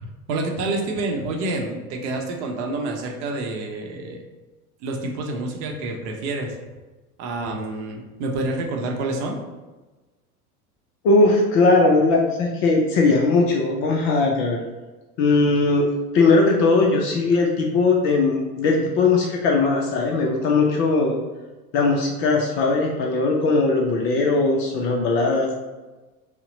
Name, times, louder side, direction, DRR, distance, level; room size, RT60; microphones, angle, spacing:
voice 1, 0.0-4.2 4.8-6.5 7.2-9.4, right 2 dB, 45° right, 2 dB, 0.8 m, -28 dB
voice 2, 11.0-14.6 15.2-15.9 16.1-21.2 21.7-25.5, left 3 dB, 30° left, 0 dB, 0.4 m, -19 dB
5.5 x 2.1 x 3.8 m, 1.2 s
figure-of-eight pair, 80°, 46 cm